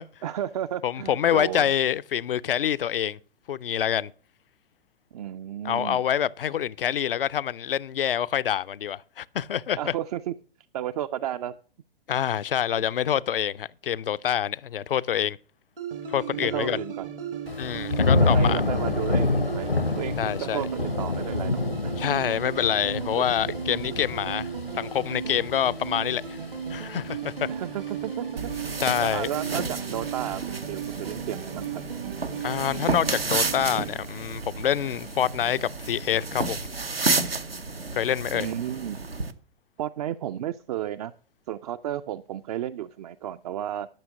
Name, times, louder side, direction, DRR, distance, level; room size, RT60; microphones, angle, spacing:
voice 1, 0.2-1.7 5.1-6.0 9.8-10.3 10.7-11.5 16.5-17.1 18.2-21.9 27.5-31.8 38.3-39.0 39.8-41.1 41.5-43.9, right 11 dB, 40° right, 0.4 m, -33 dB
voice 2, 0.8-3.2 3.5-4.1 5.6-9.9 12.1-15.4 16.1-16.8 17.6-18.6 20.2-20.6 22.0-24.5 24.7-26.4 26.7-27.5 28.8-29.3 32.4-36.6 37.9-38.5, left 9 dB, 70° left, 0.5 m, -26 dB
sound 1, 15.8-33.9, right 7 dB, 70° right, 1.9 m, -36 dB
Thunder / Rain, 17.5-28.4 28.8-29.3, left 3 dB, 85° left, 1.0 m, -28 dB
sound 2, 28.4-39.3, right 3 dB, 90° right, 0.8 m, -31 dB
12.0 x 6.1 x 6.0 m
figure-of-eight pair, 105°, 29 cm